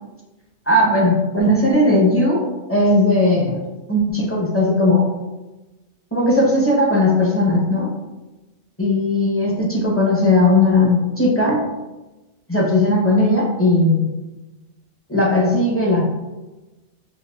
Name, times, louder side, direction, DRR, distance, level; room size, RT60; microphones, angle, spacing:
voice 1, 0.7-2.4 2.7-3.6 3.9-5.1 6.1-7.9 8.8-11.6 12.5-14.1 15.1-16.1, left 2 dB, 15° left, -4 dB, 0.5 m, -17 dB
5.7 x 2.6 x 2.3 m, 1.1 s
omnidirectional pair, 1.4 m